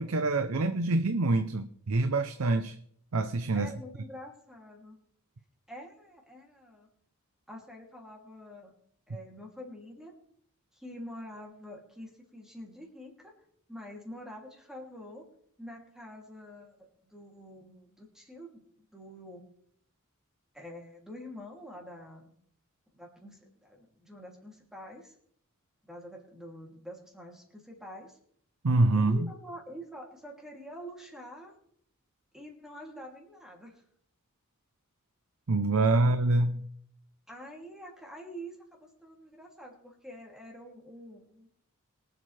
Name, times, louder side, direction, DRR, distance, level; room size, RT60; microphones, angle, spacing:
voice 1, 0.0-2.8 3.1-3.7 28.6-29.3 35.5-36.7, right 2 dB, 75° right, 9 dB, 0.7 m, -26 dB
voice 2, 3.5-5.0 5.7-6.9 7.5-8.7 9.1-10.1 10.7-13.3 13.7-15.2 15.6-19.5 20.5-22.3 22.9-25.1 25.8-28.2 28.9-31.6 32.3-33.8 37.3-41.5, equal, ahead, -1 dB, 2.8 m, -46 dB
23.0 x 8.0 x 3.3 m, 0.64 s
head